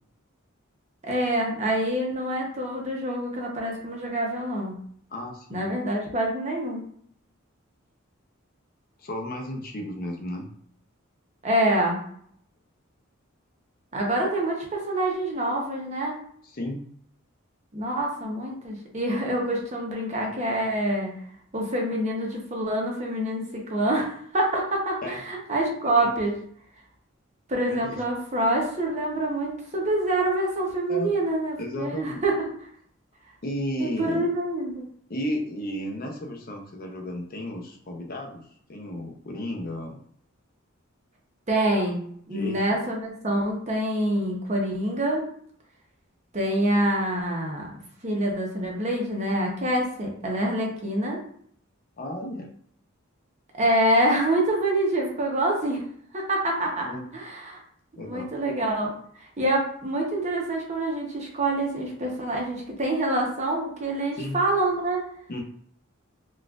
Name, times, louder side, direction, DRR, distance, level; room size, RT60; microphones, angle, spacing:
voice 1, 1.0-4.7 5.5-6.8 11.4-12.0 13.9-16.2 17.7-21.1 21.5-26.4 27.5-32.4 33.8-34.9 41.5-45.2 46.3-47.7 48.0-51.2 53.6-55.8 56.1-56.9 57.1-57.6 58.0-58.9 59.4-65.1, right 1 dB, 35° right, 0 dB, 0.8 m, -26 dB
voice 2, 5.1-5.7 9.0-10.5 16.4-16.8 25.0-25.2 26.0-26.2 27.6-28.0 30.9-31.1 31.6-32.2 33.4-34.3 35.1-40.0 42.3-42.8 52.0-52.5 56.9-57.0 58.0-58.3 64.2-64.4 65.3-65.4, left 1 dB, 45° left, 2 dB, 0.6 m, -33 dB
4.1 x 2.3 x 2.4 m, 0.63 s
head